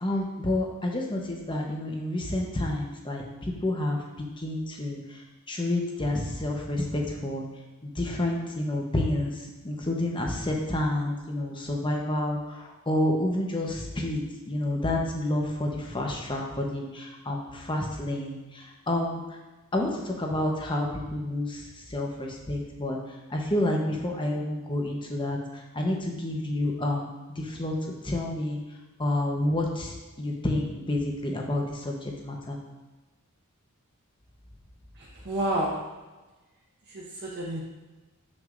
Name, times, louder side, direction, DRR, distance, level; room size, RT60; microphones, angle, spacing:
voice 1, 0.0-3.2 3.6-5.0 5.5-7.4 7.8-9.3 9.6-19.2 19.7-21.6 21.9-23.0 23.3-27.7 28.0-28.6 29.0-32.6, left 1 dB, 20° left, 0 dB, 0.9 m, -29 dB
voice 2, 35.0-35.7 36.9-37.6, right 1 dB, 55° right, -7 dB, 1.2 m, -30 dB
7.3 x 6.3 x 2.5 m, 1.1 s
head